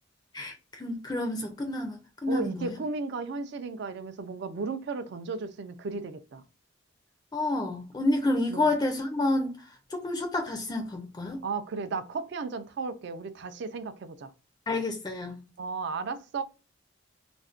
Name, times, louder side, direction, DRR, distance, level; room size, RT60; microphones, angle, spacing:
voice 1, 0.3-2.8 7.3-9.5 9.9-11.4 14.7-15.4, left 2 dB, 20° left, 0.4 m, -29 dB
voice 2, 2.3-6.4 8.5-8.7 11.4-14.3 15.6-16.4, right 4 dB, 60° right, 0.4 m, -34 dB
2.5 x 2.1 x 2.4 m
head